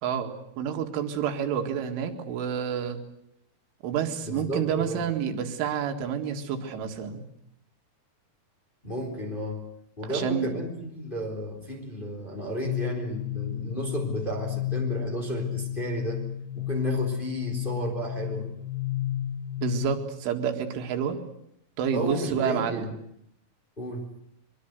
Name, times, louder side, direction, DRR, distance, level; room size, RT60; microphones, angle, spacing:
voice 1, 0.6-3.0 3.8-7.2 10.1-10.6 19.6-21.2 21.8-22.9, right 8 dB, 85° right, 5 dB, 4.5 m, -29 dB
voice 2, 4.2-5.0 8.8-9.7 10.0-16.2 16.5-18.5 21.9-23.0 23.8-24.1, right 1 dB, 10° left, 2 dB, 3.2 m, -33 dB
sound 1, 12.7-20.2, left 12 dB, 70° left, 2.7 m, -32 dB
23.0 x 23.0 x 8.1 m, 0.75 s
omnidirectional pair, 5.5 m